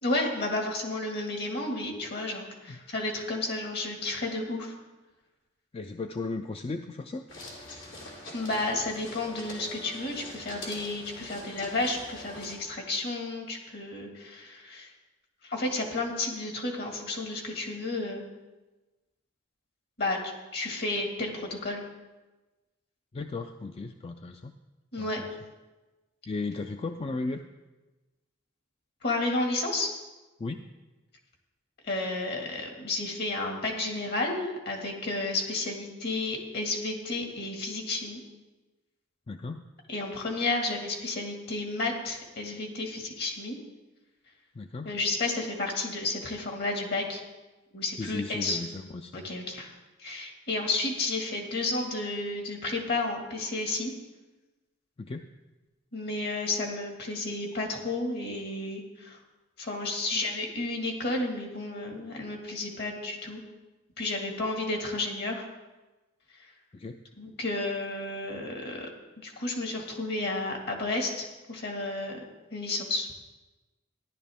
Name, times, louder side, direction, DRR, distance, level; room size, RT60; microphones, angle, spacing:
voice 1, 0.0-4.7 8.3-14.9 15.4-18.2 20.0-21.8 24.9-25.2 29.0-29.9 31.8-38.2 39.9-43.6 44.8-47.2 47.7-48.6 49.1-49.7 50.0-53.9 55.9-59.2 59.6-63.4 64.0-65.4 66.4-66.5 67.2-68.9 69.2-72.2 72.5-73.1, left 2 dB, 55° left, 2 dB, 2.0 m, -32 dB
voice 2, 5.7-7.3 23.1-24.5 25.0-25.3 26.3-27.4 30.4-30.6 39.3-39.6 44.6-44.9 48.0-49.2 55.0-55.3 66.7-67.0, left 3 dB, 30° left, 7 dB, 0.4 m, -35 dB
sound 1, 7.3-12.6, left 2 dB, 80° left, 2.9 m, -44 dB
13.5 x 11.0 x 3.6 m, 1.1 s
head